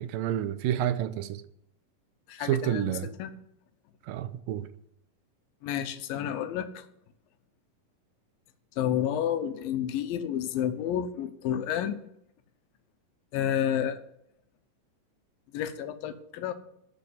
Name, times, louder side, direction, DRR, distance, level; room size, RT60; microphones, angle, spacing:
voice 1, 0.0-1.4 2.4-3.1 4.1-4.7, right 11 dB, 85° right, 2.4 m, -29 dB
voice 2, 2.3-3.3 5.6-6.9 8.8-12.0 13.3-14.0 15.5-16.5, left 10 dB, 90° left, 2.7 m, -30 dB
13.5 x 6.0 x 9.6 m
omnidirectional pair, 4.0 m